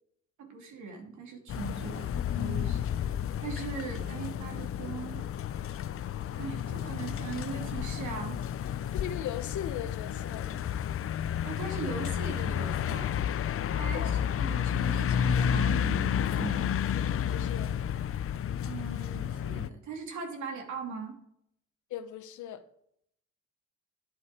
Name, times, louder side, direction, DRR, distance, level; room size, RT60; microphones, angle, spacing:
voice 1, 0.4-2.9 3.4-5.2 6.4-8.4 11.4-13.2 13.7-16.7 18.6-21.2, right 5 dB, 70° right, 3.1 m, -40 dB
sound 1, 1.5-19.7, left 9 dB, 50° left, 0.6 m, -31 dB
voice 2, 8.9-10.5 13.9-14.1 17.3-17.7 21.9-22.6, left 10 dB, 75° left, 1.0 m, -38 dB
11.0 x 7.6 x 4.5 m
cardioid pair, 90°, 30 cm